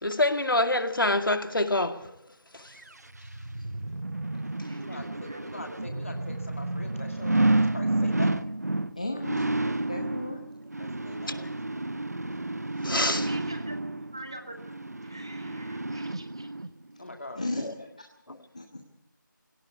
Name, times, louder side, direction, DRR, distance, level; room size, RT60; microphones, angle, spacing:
voice 1, 0.0-2.1 2.5-2.7 11.3-11.5 12.8-13.3, left 2 dB, 85° left, 2.2 m, -26 dB
sound 1, 2.8-16.7 17.1-17.2, right 2 dB, 50° right, 0.9 m, -30 dB
voice 2, 4.8-8.5 10.8-11.5 17.0-17.4, left 1 dB, 40° left, 2.3 m, -43 dB
voice 3, 8.9-10.4 17.4-17.9 18.5-18.8, left 2 dB, 20° left, 1.2 m, -35 dB
voice 4, 12.9-14.7 15.0-16.5, right 1 dB, 15° right, 1.1 m, -45 dB
18.0 x 17.5 x 8.1 m
figure-of-eight pair, 180°, 11 cm